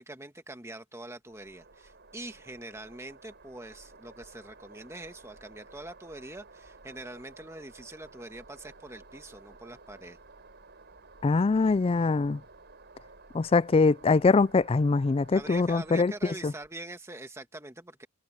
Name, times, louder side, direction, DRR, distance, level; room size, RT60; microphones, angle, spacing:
voice 1, 0.0-10.2 15.3-18.1, right 2 dB, 10° right, 1.6 m, -44 dB
sound 1, 1.3-16.8, right 3 dB, 50° right, 5.4 m, -54 dB
voice 2, 11.2-12.4 13.3-16.1 16.4-16.5, left 4 dB, 25° left, 0.3 m, -23 dB
head